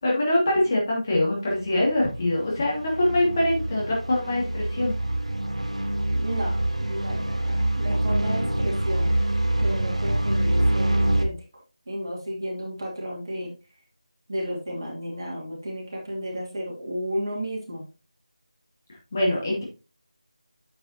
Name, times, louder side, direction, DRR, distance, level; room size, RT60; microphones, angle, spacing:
voice 1, 0.0-5.0 19.1-19.6, left 1 dB, 25° left, -4 dB, 2.5 m, -23 dB
sound 1, 1.6-11.2, right 1 dB, 70° right, 2.0 m, -25 dB
voice 2, 6.1-9.1 9.6-11.3 11.9-13.5 14.3-17.8, equal, 35° right, -3 dB, 2.5 m, -32 dB
9.2 x 6.8 x 2.9 m, 0.32 s
figure-of-eight pair, 165°, 4 cm